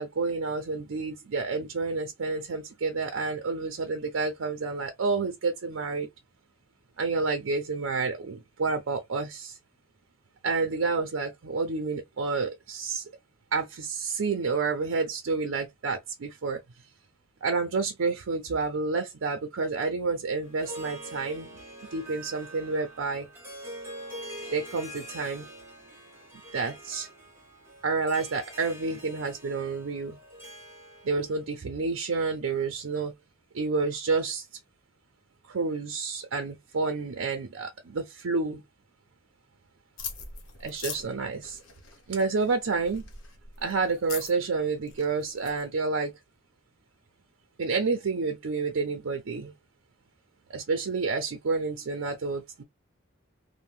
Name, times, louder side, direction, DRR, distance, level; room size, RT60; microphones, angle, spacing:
voice 1, 0.0-6.1 7.0-9.6 10.4-13.0 13.5-16.6 17.4-21.5 21.9-23.3 24.5-25.5 26.5-27.1 27.8-30.2 31.0-33.1 33.5-34.4 35.5-38.6 40.6-41.6 42.1-43.0 43.6-46.1 47.6-49.5 50.5-52.6, right 4 dB, 75° right, 0.5 m, -29 dB
Harp, 20.4-31.4, right 1 dB, 10° right, 1.1 m, -44 dB
sound 1, 40.0-45.6, left 5 dB, 70° left, 0.9 m, -42 dB
2.7 x 2.1 x 3.2 m
head